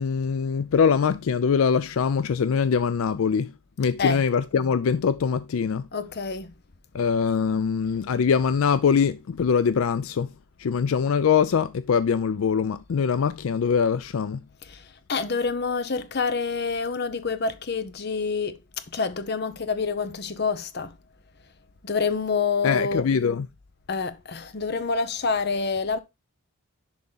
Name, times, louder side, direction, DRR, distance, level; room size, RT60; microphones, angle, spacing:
voice 1, 0.0-3.5 3.8-5.9 6.9-10.3 10.6-14.4 22.6-23.5, left 6 dB, 80° left, 0.4 m, -23 dB
voice 2, 5.9-6.5 14.7-18.6 18.9-21.0 21.8-23.1 23.9-26.0, left 4 dB, 50° left, 0.7 m, -27 dB
10.5 x 3.6 x 3.9 m
head